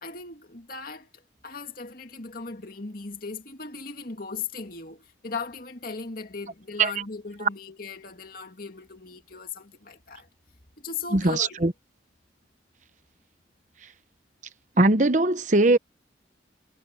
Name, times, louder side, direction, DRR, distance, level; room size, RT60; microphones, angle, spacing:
voice 1, 0.0-10.3 10.8-11.7, left 4 dB, 50° left, 2.4 m, -38 dB
voice 2, 11.1-11.7 14.8-15.8, right 2 dB, 40° right, 1.0 m, -20 dB
head